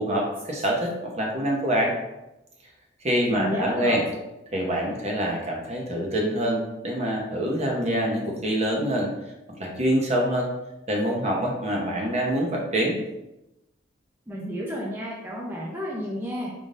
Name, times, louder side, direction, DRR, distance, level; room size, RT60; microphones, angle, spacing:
voice 1, 0.0-1.9 3.0-4.0 4.5-9.1 9.6-10.5 10.9-13.0, equal, 35° right, -1 dB, 0.9 m, -25 dB
voice 2, 3.3-4.1 14.3-16.5, equal, 10° right, -4 dB, 0.6 m, -31 dB
5.0 x 3.7 x 2.5 m, 0.96 s
head